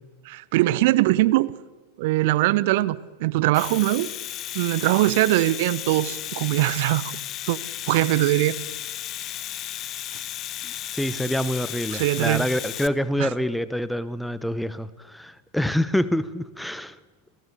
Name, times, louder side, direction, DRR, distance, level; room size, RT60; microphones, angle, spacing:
voice 1, 0.2-1.5 2.0-4.1 4.5-7.1 7.5-7.6 7.9-8.6 11.9-12.5 13.2-13.3, right 17 dB, 50° right, 18 dB, 0.8 m, -21 dB
Domestic sounds home sounds, 3.4-12.9, left 12 dB, 35° left, 1.1 m, -34 dB
voice 2, 10.6-17.0, equal, ahead, 16 dB, 1.0 m, -26 dB
29.0 x 17.0 x 8.2 m, 1.3 s
figure-of-eight pair, 90°, 0 cm